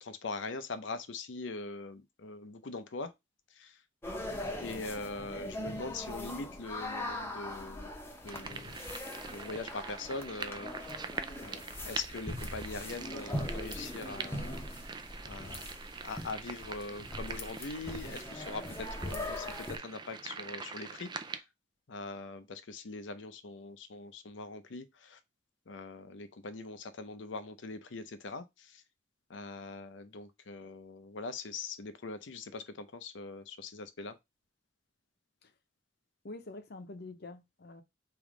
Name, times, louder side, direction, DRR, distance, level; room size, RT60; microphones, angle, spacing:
voice 1, 0.0-3.1 3.5-3.8 4.6-7.9 8.2-10.9 11.4-14.6 15.3-15.6 16.0-21.4 21.9-25.2 25.7-28.8 29.3-34.2, left 3 dB, 90° left, 0.7 m, -42 dB
sound 1, 4.0-19.8, left 1 dB, 15° left, 0.8 m, -41 dB
sound 2, 8.3-21.4, right 5 dB, 25° right, 0.4 m, -44 dB
voice 2, 36.2-37.8, left 2 dB, 60° left, 0.8 m, -46 dB
3.5 x 3.1 x 4.8 m
head